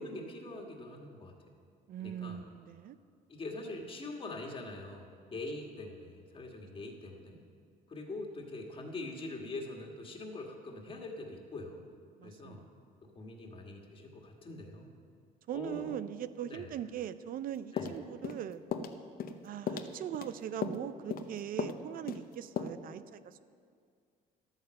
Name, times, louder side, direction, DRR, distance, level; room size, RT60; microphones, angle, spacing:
voice 1, 0.0-1.4 2.0-2.4 3.3-7.4 7.9-11.8 12.2-12.6 13.2-14.9 15.5-16.0 16.4-16.7 17.7-17.9, left 2 dB, 30° left, 1 dB, 1.8 m, -43 dB
voice 2, 1.9-3.0 12.2-12.7 13.2-13.3 15.5-18.6 19.4-23.4, right 10 dB, 55° right, 14 dB, 0.5 m, -40 dB
sound 1, 17.8-18.4 18.7-18.9 19.2-19.4 19.7-20.3 20.6-20.8 21.1-21.3 21.6-21.8 22.1-22.2 22.6-22.7, left 7 dB, 60° left, 0.8 m, -36 dB
12.0 x 9.1 x 6.4 m, 2.2 s
cardioid pair, 110°, 17 cm